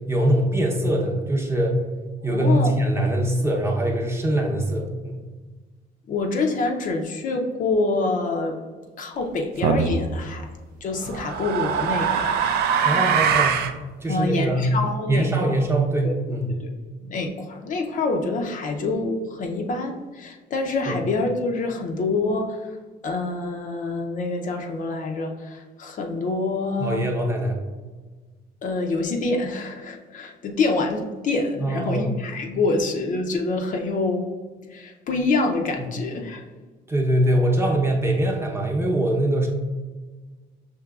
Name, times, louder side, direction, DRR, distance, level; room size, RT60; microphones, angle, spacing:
voice 1, 0.1-1.8 2.2-5.2 12.8-13.6 14.0-14.7 15.1-16.5 20.9-21.0 26.8-27.6 31.6-32.1 36.9-39.5, right 1 dB, 15° right, -1 dB, 0.7 m, -22 dB
voice 2, 2.2-2.7 6.1-8.6 9.0-10.5 10.8-12.4 14.1-15.5 16.0-16.1 16.6-16.7 17.1-22.7 23.0-27.1 28.6-34.3 34.7-36.4, left 3 dB, 50° left, 3 dB, 0.5 m, -26 dB
sound 1, 9.6-10.0 11.0-13.8, right 7 dB, 70° right, 0.4 m, -22 dB
5.9 x 2.8 x 2.3 m, 1.3 s
cardioid pair, 110°, 17 cm